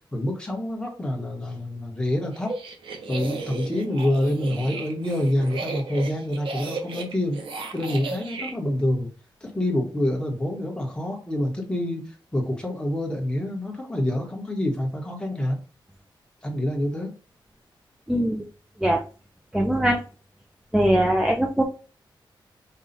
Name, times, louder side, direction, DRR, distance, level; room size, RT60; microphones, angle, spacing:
voice 1, 0.1-2.5 3.1-7.4 7.7-9.1 9.4-15.6 16.4-17.1, left 1 dB, 10° left, 1 dB, 1.2 m, -27 dB
sound 1, 2.3-8.5, right 3 dB, 80° right, 0.9 m, -35 dB
voice 2, 18.1-18.4 18.8-19.0 19.5-20.0 20.7-21.6, right 1 dB, 5° right, 2 dB, 0.5 m, -21 dB
5.6 x 2.4 x 3.9 m, 0.37 s
wide cardioid pair, 130°, 9 cm